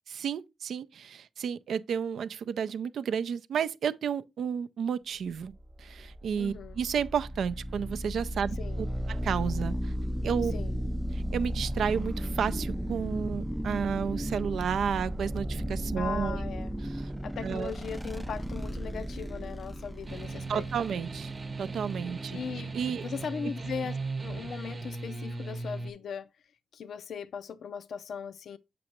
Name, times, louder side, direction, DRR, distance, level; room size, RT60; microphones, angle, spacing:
voice 1, 0.1-5.5 5.8-9.9 10.2-10.5 11.1-16.4 16.8-17.1 17.4-17.7 20.5-21.3 21.6-22.4 22.7-23.0, right 7 dB, 75° right, 0.4 m, -32 dB
sound 1, 5.5-22.9, equal, 10° right, 0.4 m, -35 dB
voice 2, 6.4-6.8 8.6-8.8 10.5-10.8 16.0-16.7 17.2-20.6 22.3-26.3 26.7-28.6, left 6 dB, 75° left, 0.4 m, -39 dB
sound 2, 20.1-25.9, right 3 dB, 45° right, 0.8 m, -37 dB
7.6 x 5.2 x 2.8 m
supercardioid pair, 50°, 0 cm